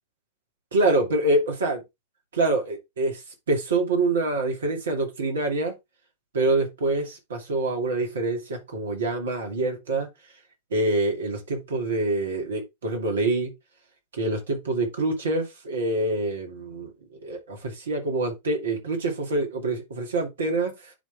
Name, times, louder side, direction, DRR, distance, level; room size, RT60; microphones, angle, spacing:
voice 1, 0.7-1.8 2.3-3.2 3.5-5.7 6.3-10.1 10.7-13.5 14.1-16.9 17.2-20.9, right 2 dB, 65° right, 2.5 m, -26 dB
10.0 x 3.6 x 3.4 m
figure-of-eight pair, 90°, 0 cm